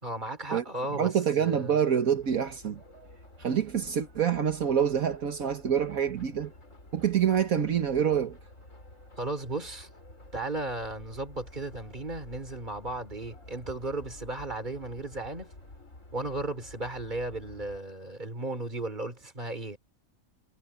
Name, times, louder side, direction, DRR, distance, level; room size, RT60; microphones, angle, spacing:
voice 1, 0.0-1.1 1.4-1.8 9.2-9.9 10.3-15.5 16.1-19.8, right 2 dB, 30° right, 3.6 m, -35 dB
voice 2, 0.9-2.8 3.4-6.5 6.9-8.4, right 8 dB, 70° right, 1.8 m, -26 dB
sound 1, 2.1-17.8, left 1 dB, 60° left, 5.8 m, -51 dB
omnidirectional pair, 1.5 m